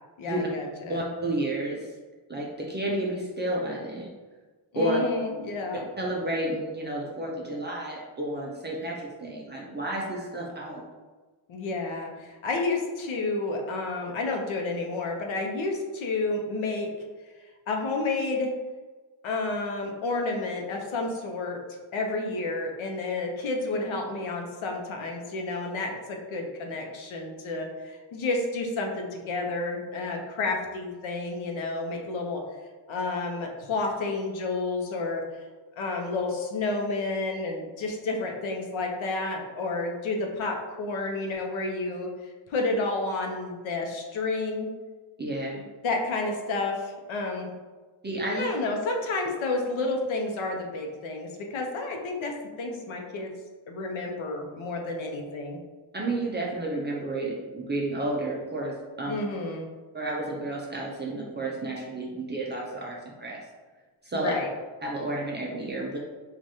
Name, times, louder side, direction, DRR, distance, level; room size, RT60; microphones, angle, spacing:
voice 1, 0.2-1.0 4.7-5.8 11.5-16.9 17.7-18.5 19.2-21.6 21.9-32.4 32.9-35.2 35.8-42.1 42.5-44.7 45.8-47.5 48.3-52.3 52.6-53.3 53.7-55.6 59.1-59.7 64.1-64.5, left 3 dB, 75° left, 1 dB, 0.7 m, -30 dB
voice 2, 0.9-1.9 2.3-4.1 4.8-5.0 6.0-10.8 45.2-45.6 48.0-48.5 55.9-59.2 59.9-63.4 64.0-64.3 64.8-66.0, right 1 dB, 25° right, -3 dB, 0.3 m, -31 dB
4.7 x 2.4 x 2.7 m, 1.3 s
wide cardioid pair, 180°, 48 cm